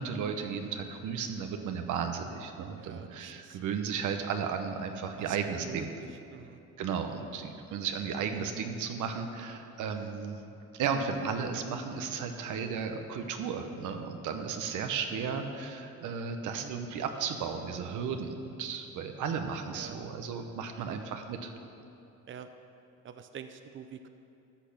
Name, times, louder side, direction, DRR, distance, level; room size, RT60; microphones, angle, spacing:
voice 1, 0.0-5.9 6.8-10.4 10.7-21.5, right 6 dB, 85° right, 6 dB, 1.0 m, -34 dB
voice 2, 2.7-3.6 5.2-6.6 16.4-16.7 19.7-20.0 20.8-21.0 22.3-22.5 23.0-24.1, right 7 dB, 40° right, 8 dB, 0.6 m, -46 dB
14.0 x 6.6 x 5.9 m, 2.8 s
cardioid pair, 90°, 30 cm